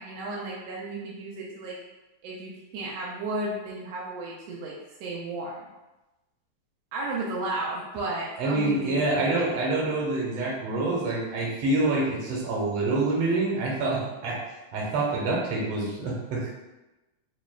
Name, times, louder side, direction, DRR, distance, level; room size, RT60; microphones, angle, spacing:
voice 1, 0.0-1.8 2.2-4.7 5.0-5.7 6.9-9.5, right 2 dB, 80° right, -4 dB, 1.5 m, -34 dB
voice 2, 8.4-14.4 14.7-16.5, right 2 dB, 65° right, -4 dB, 1.7 m, -26 dB
6.3 x 2.2 x 2.3 m, 1.0 s
omnidirectional pair, 3.4 m